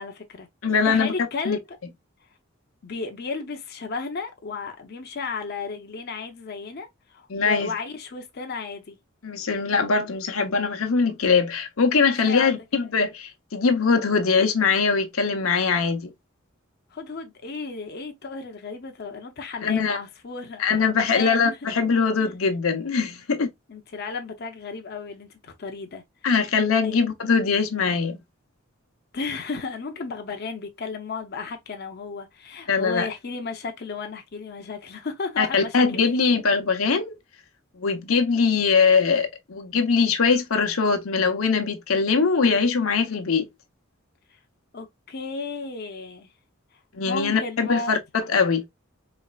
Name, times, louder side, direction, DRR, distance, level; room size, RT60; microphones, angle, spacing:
voice 1, 0.0-0.5 0.8-1.8 2.8-9.0 12.1-12.5 16.9-21.6 22.2-22.3 23.7-26.0 26.8-27.0 29.1-35.8 36.0-36.2 44.7-46.3 47.0-47.9, left 4 dB, 50° left, 0.7 m, -34 dB
voice 2, 0.6-1.1 1.4-1.6 7.3-7.7 9.2-16.1 19.6-20.0 20.6-23.5 26.2-28.2 32.7-33.1 35.4-37.1 37.8-43.5 46.9-48.7, left 5 dB, 90° left, 0.8 m, -22 dB
4.2 x 3.1 x 2.3 m
head